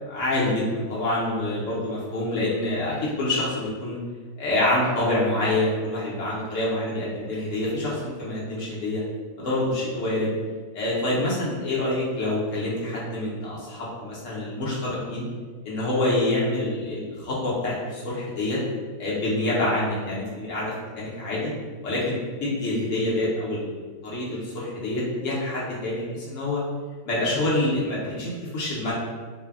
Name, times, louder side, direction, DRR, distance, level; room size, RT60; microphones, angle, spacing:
voice 1, 0.1-4.0 4.4-9.0 9.4-10.3 10.7-15.2 15.6-18.6 19.0-21.5 21.8-26.6 27.0-28.9, left 1 dB, 75° left, -7 dB, 0.7 m, -26 dB
3.1 x 2.1 x 2.3 m, 1.5 s
omnidirectional pair, 2.1 m